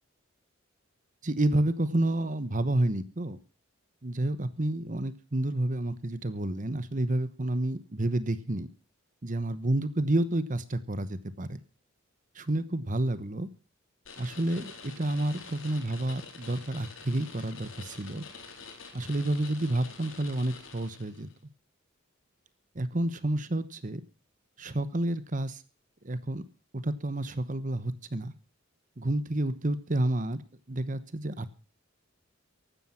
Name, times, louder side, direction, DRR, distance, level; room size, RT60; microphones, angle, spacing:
voice 1, 1.2-3.4 4.0-8.7 9.2-11.6 12.3-13.5 14.2-18.2 18.9-21.3 22.7-24.0 24.6-25.6 26.0-26.4 26.7-28.3 29.0-30.4 30.7-31.6, right 1 dB, 40° right, 14 dB, 1.1 m, -30 dB
sound 1, 14.1-21.3, left 5 dB, 70° left, 3.9 m, -47 dB
15.5 x 12.0 x 5.7 m, 0.35 s
head